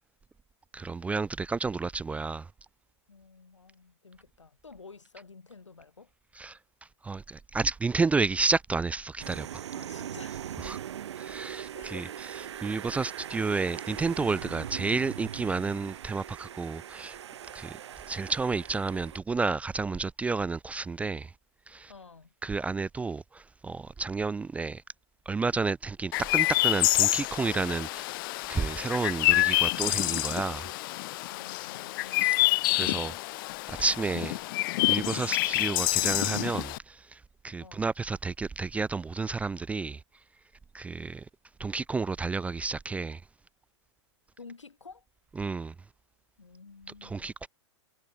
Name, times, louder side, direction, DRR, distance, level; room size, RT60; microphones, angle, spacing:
voice 1, 0.7-2.5 6.4-6.6 7.0-9.6 10.6-10.8 11.2-12.0 12.6-17.2 17.5-17.8 18.1-21.3 21.7-21.9 22.4-24.8 25.3-28.1 28.5-30.7 32.2-32.3 32.7-33.1 33.7-34.4 34.9-40.0 40.7-41.3 41.6-43.2 45.4-45.7 47.0-47.5, right 4 dB, 10° right, 0.4 m, -31 dB
voice 2, 3.1-6.1 9.7-10.8 11.7-12.3 21.9-22.3 31.3-32.4 37.6-37.8 44.4-45.0 46.4-47.3, left 4 dB, 90° left, 4.3 m, -51 dB
sound 1, 9.2-19.2, right 10 dB, 70° right, 1.3 m, -40 dB
Chirp tweet, 26.1-36.8, left 21 dB, 45° left, 0.6 m, -27 dB
hypercardioid pair, 110°, 15 cm